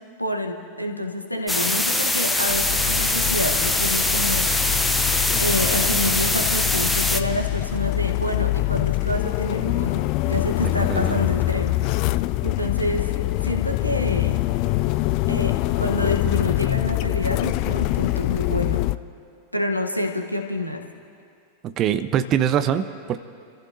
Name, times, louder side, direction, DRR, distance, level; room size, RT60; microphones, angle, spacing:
voice 1, 0.2-4.5 5.4-11.8 12.4-13.1 13.4-14.4 15.3-18.8 19.5-20.8, left 1 dB, 90° left, 2 dB, 1.2 m, -27 dB
sound 1, 1.5-7.2, left 1 dB, 5° left, 0.7 m, -22 dB
sound 2, 2.5-19.0, left 18 dB, 45° left, 0.3 m, -24 dB
voice 2, 10.6-11.2 21.6-23.2, right 9 dB, 35° right, 12 dB, 0.7 m, -23 dB
30.0 x 14.5 x 2.8 m, 2.3 s
figure-of-eight pair, 90°, 0 cm